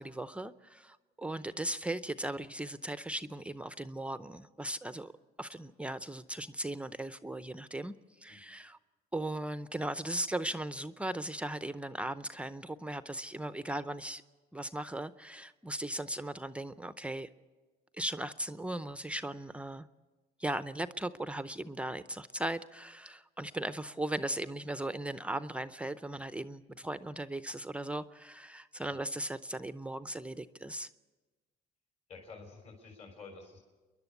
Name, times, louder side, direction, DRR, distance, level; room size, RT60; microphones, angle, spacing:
voice 1, 0.0-5.1 5.4-8.0 8.2-8.8 9.1-14.2 14.5-17.3 18.0-19.9 20.4-30.9, right 1 dB, 5° right, 12 dB, 0.6 m, -38 dB
voice 2, 32.1-33.6, left 4 dB, 40° left, 2 dB, 3.6 m, -50 dB
29.0 x 11.5 x 8.2 m, 1.2 s
cardioid pair, 110°, 17 cm